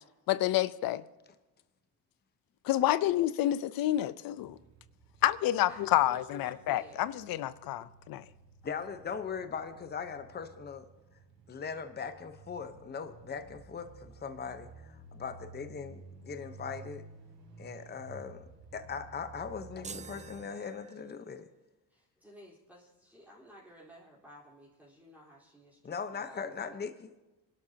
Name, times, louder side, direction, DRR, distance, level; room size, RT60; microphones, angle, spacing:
voice 1, 0.3-1.0 2.6-4.6 5.2-8.2, left 13 dB, 70° left, 0.7 m, -29 dB
sound 1, 4.4-20.4, right 3 dB, 90° right, 3.5 m, -53 dB
voice 2, 5.7-7.0 21.9-26.8, equal, 5° right, 4.0 m, -54 dB
voice 3, 8.6-10.9 11.5-17.0 17.6-21.5 25.8-27.1, left 6 dB, 25° left, 1.0 m, -40 dB
sound 2, 19.8-21.4, right 6 dB, 20° right, 0.5 m, -48 dB
26.0 x 12.0 x 2.9 m
cardioid pair, 105°, 36 cm